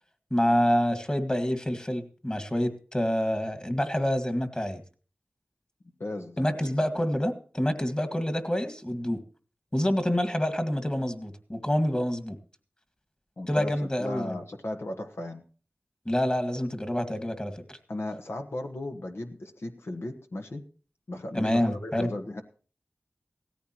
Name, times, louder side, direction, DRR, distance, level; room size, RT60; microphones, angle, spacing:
voice 1, 0.3-4.8 6.4-9.2 9.7-12.4 13.5-14.4 16.1-17.8 21.3-22.1, equal, 20° left, 9 dB, 2.0 m, -27 dB
voice 2, 6.0-6.6 13.4-13.7 14.0-15.4 17.9-20.6 21.1-22.4, left 1 dB, 75° left, 4 dB, 1.5 m, -36 dB
17.0 x 14.0 x 3.1 m, 0.40 s
wide cardioid pair, 50°, 4 cm